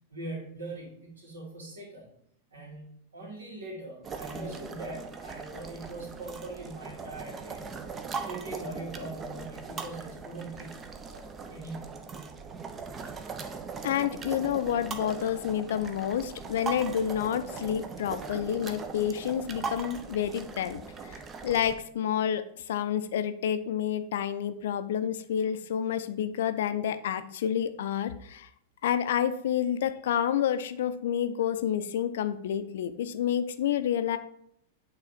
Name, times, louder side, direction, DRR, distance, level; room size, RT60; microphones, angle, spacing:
voice 1, 0.1-2.1 2.5-2.9 3.1-7.7 8.2-10.8 11.1-12.0 13.6-13.7, right 2 dB, 70° right, -2 dB, 2.2 m, -41 dB
sound 1, 4.0-21.7, right 5 dB, 20° right, 0.6 m, -40 dB
voice 2, 13.8-28.5 28.8-34.2, left 9 dB, 60° left, 11 dB, 0.4 m, -29 dB
8.1 x 3.2 x 4.1 m, 0.69 s
figure-of-eight pair, 95°, 0 cm